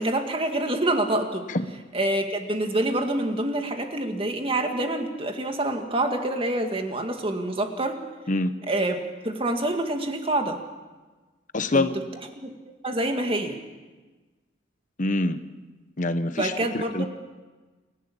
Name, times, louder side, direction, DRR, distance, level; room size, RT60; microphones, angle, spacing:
voice 1, 0.0-1.5 1.9-8.0 8.7-10.6 11.7-11.9 12.4-12.5 12.8-13.6 16.4-17.1, right 1 dB, 30° right, 5 dB, 2.1 m, -26 dB
voice 2, 11.5-11.9 15.0-15.4 16.0-17.1, left 2 dB, 40° left, 11 dB, 1.0 m, -25 dB
28.5 x 12.0 x 8.7 m, 1.3 s
head